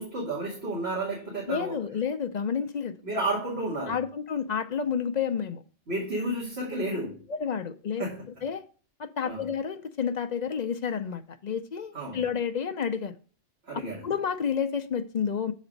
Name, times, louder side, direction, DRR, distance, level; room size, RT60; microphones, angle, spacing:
voice 1, 0.0-1.8 3.0-4.0 5.9-7.2 8.0-8.3 9.2-9.5 11.9-12.2 13.6-14.1, right 2 dB, 55° right, 2.3 m, -32 dB
voice 2, 1.5-2.9 3.9-5.6 7.3-8.0 8.4-8.6 9.0-13.1 13.7-15.5, left 7 dB, 55° left, 0.5 m, -30 dB
7.0 x 4.2 x 5.1 m
omnidirectional pair, 1.3 m